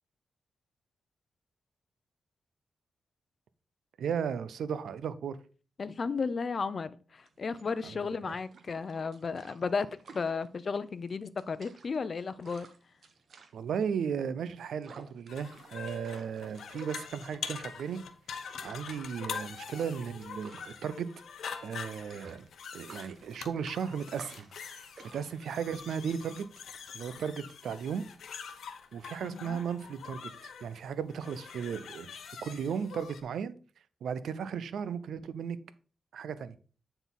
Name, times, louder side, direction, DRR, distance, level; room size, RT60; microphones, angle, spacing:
voice 1, 4.0-5.4 7.8-8.0 8.3-8.4 13.5-18.0 18.6-21.1 21.6-22.5 22.7-24.5 24.7-24.9 25.1-26.5 26.9-28.1 28.9-32.1 32.4-33.5 34.0-35.6 36.1-36.5, right 7 dB, 85° right, 0.5 m, -35 dB
voice 2, 5.8-9.9 10.1-12.7 29.2-29.6, left 5 dB, 50° left, 0.5 m, -34 dB
sound 1, 7.2-26.9, right 4 dB, 65° right, 1.0 m, -55 dB
sound 2, 15.3-33.2, left 6 dB, 80° left, 0.8 m, -44 dB
9.2 x 3.9 x 4.0 m
cardioid pair, 75°, 0 cm